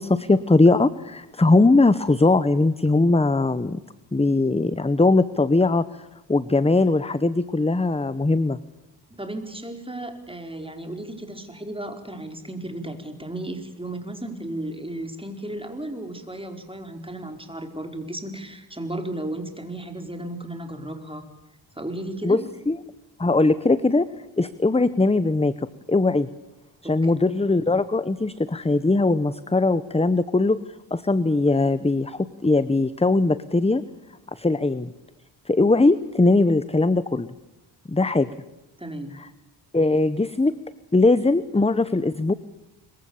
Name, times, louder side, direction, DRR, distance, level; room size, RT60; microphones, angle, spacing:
voice 1, 0.0-3.8 4.1-6.0 6.3-8.6 22.2-22.8 23.2-24.1 24.4-25.5 25.9-26.3 26.8-30.6 30.9-33.8 34.3-34.9 35.5-37.3 37.9-38.3 39.2-39.3 39.7-40.5 40.9-42.3, left 2 dB, 15° left, 15 dB, 0.8 m, -20 dB
voice 2, 9.1-21.2 21.8-22.4 26.8-27.1 38.8-39.2, right 1 dB, 10° right, 5 dB, 4.6 m, -34 dB
26.0 x 23.0 x 7.1 m, 0.97 s
wide cardioid pair, 90°, 47 cm